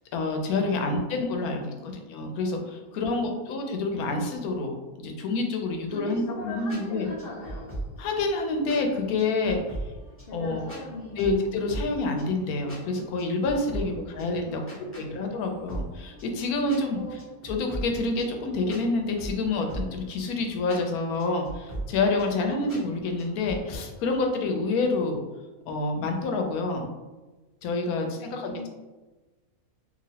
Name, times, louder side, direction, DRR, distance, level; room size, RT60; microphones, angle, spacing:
voice 1, 0.1-7.1 8.0-9.6 10.3-10.6 11.2-14.6 15.0-17.0 17.4-25.2 25.7-26.9 27.6-28.7, left 3 dB, 90° left, 3 dB, 1.1 m, -28 dB
voice 2, 0.6-2.0 2.8-3.4 5.9-7.7 10.3-11.3 13.7-14.0 14.4-15.5 16.9-17.6 22.2-22.5 28.0-28.7, left 1 dB, 55° left, -3 dB, 0.7 m, -41 dB
sound 1, 6.3-23.8, right 2 dB, 10° left, 0.8 m, -40 dB
2.9 x 2.7 x 2.8 m, 1.2 s
omnidirectional pair, 1.5 m